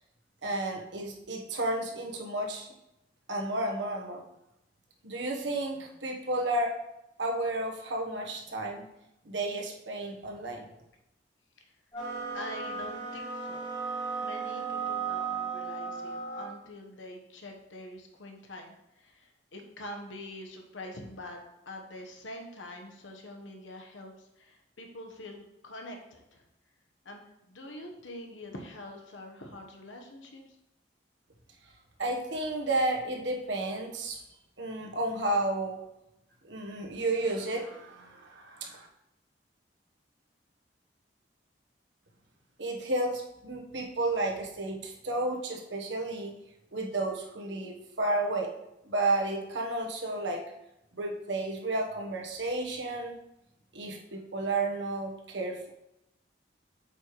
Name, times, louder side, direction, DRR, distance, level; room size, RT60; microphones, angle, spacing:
voice 1, 0.4-2.7 3.3-4.2 5.0-6.8 7.2-8.8 9.2-10.6 32.0-34.2 34.6-35.8 36.4-38.9 42.6-46.3 46.7-48.5 48.9-50.4 51.0-53.1 53.7-55.7, right 2 dB, 75° right, 0 dB, 1.2 m, -32 dB
sound 1, 11.9-16.6, right 5 dB, 25° left, 2.3 m, -35 dB
voice 2, 12.3-13.7 14.2-21.4 21.6-26.4 27.0-30.6, left 1 dB, 85° left, 3 dB, 1.2 m, -45 dB
8.0 x 5.6 x 3.2 m, 0.85 s
head